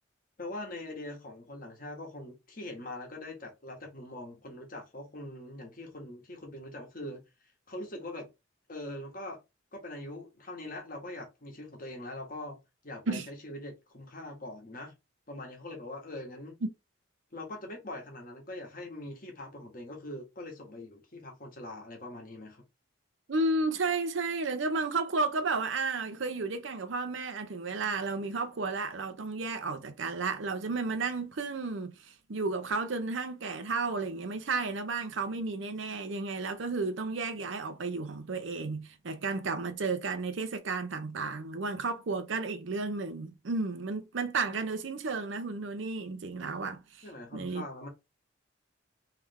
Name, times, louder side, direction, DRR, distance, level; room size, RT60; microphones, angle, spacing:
voice 1, 0.4-7.2 7.7-8.3 8.7-9.4 9.7-12.6 12.8-14.9 15.3-16.6 17.3-22.6 47.0-47.9, left 1 dB, 45° left, 1.4 m, -42 dB
voice 2, 23.3-47.1 47.3-47.6, right 3 dB, 75° right, 0.6 m, -33 dB
3.4 x 3.3 x 3.4 m
head